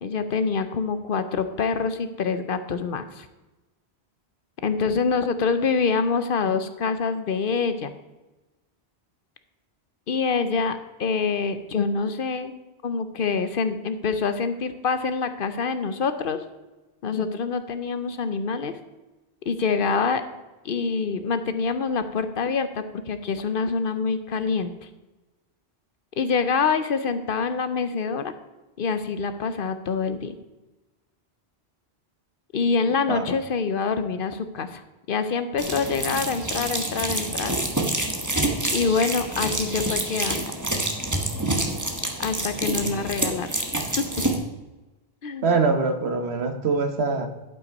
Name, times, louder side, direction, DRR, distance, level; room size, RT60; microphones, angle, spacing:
voice 1, 0.0-3.3 4.6-7.9 10.1-12.5 12.8-16.4 17.0-18.7 19.5-20.2 20.6-24.7 26.2-28.3 28.8-30.4 32.5-34.8 35.1-37.5 38.7-40.5 42.2-43.5 44.0-44.1 45.2-45.6, left 5 dB, 60° left, 10 dB, 0.8 m, -25 dB
sound 1, 35.6-44.4, right 1 dB, 15° right, 1.1 m, -27 dB
voice 2, 45.4-47.3, right 4 dB, 75° right, 7 dB, 1.3 m, -23 dB
11.0 x 5.8 x 5.2 m, 1.1 s
omnidirectional pair, 1.1 m